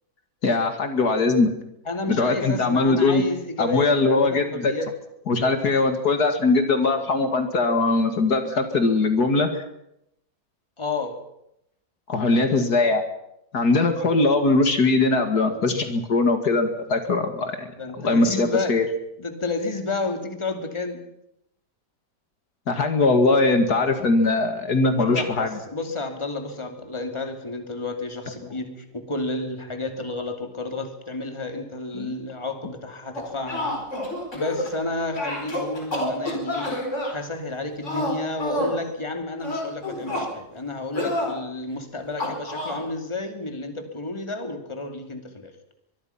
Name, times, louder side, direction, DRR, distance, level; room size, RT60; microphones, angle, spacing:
voice 1, 0.4-1.5 2.1-3.2 3.6-4.7 5.3-9.6 12.1-13.0 13.5-17.7 18.0-18.8 22.7-25.5 28.4-28.5 32.0-32.1, left 3 dB, 65° left, 7 dB, 2.6 m, -21 dB
voice 2, 1.9-4.9 10.8-11.2 17.8-18.8 19.2-21.0 25.0-33.7 34.3-36.7 37.1-45.5, left 3 dB, 15° left, 5 dB, 2.5 m, -31 dB
sound 1, 33.2-34.8 35.1-37.1 37.8-38.8 39.4-40.3 40.9-41.3 42.2-42.8, left 1 dB, 45° left, 5.1 m, -28 dB
24.0 x 22.5 x 5.8 m, 0.80 s
omnidirectional pair, 1.8 m